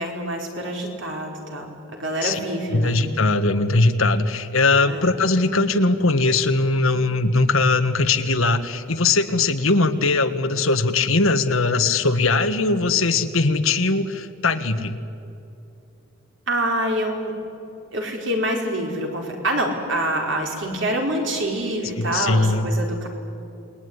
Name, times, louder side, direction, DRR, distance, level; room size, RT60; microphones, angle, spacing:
voice 1, 0.0-3.0 4.9-5.1 16.5-17.3 17.9-23.1, right 1 dB, 55° right, 1 dB, 4.9 m, -26 dB
voice 2, 2.7-15.0 22.0-22.7, left 3 dB, 75° left, 9 dB, 1.5 m, -20 dB
28.0 x 21.0 x 9.8 m, 2.7 s
head